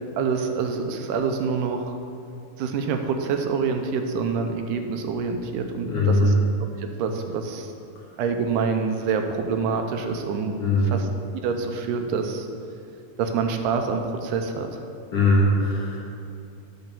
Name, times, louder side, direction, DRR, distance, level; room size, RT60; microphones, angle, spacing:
voice 1, 0.2-2.0 2.6-6.3 6.8-7.7 8.2-10.6 10.8-11.1 11.3-12.5 13.2-14.7, right 5 dB, 85° right, 5 dB, 2.2 m, -26 dB
voice 2, 5.9-6.3 10.6-10.9 15.1-16.0, left 2 dB, 60° left, -5 dB, 1.6 m, -20 dB
9.0 x 3.8 x 6.9 m, 2.4 s
omnidirectional pair, 3.6 m